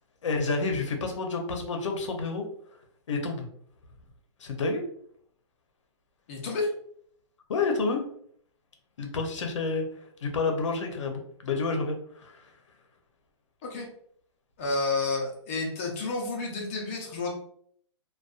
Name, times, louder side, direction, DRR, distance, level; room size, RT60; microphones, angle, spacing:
voice 1, 0.2-2.5 3.1-3.5 4.4-4.9 7.5-8.0 9.0-9.9 10.2-12.4, left 3 dB, 75° left, 4 dB, 0.7 m, -29 dB
voice 2, 6.3-6.7 13.7-13.9 14.6-17.3, left 3 dB, 25° left, -2 dB, 0.6 m, -30 dB
2.5 x 2.2 x 2.4 m, 0.63 s
hypercardioid pair, 165°, 15 cm